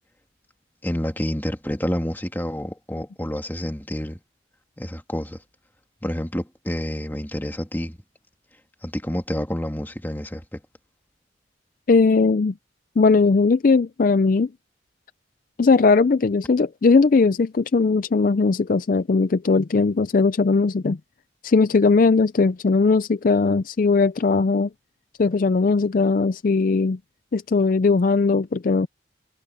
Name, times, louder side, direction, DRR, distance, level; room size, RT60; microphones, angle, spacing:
voice 1, 0.8-4.2 4.8-5.4 6.0-8.0 8.8-10.6, equal, 10° left, 2.2 m, -28 dB
voice 2, 11.9-12.5 13.0-14.5 15.6-21.0 21.4-24.7 25.2-27.0 27.3-28.9, left 4 dB, 45° left, 0.4 m, -19 dB
head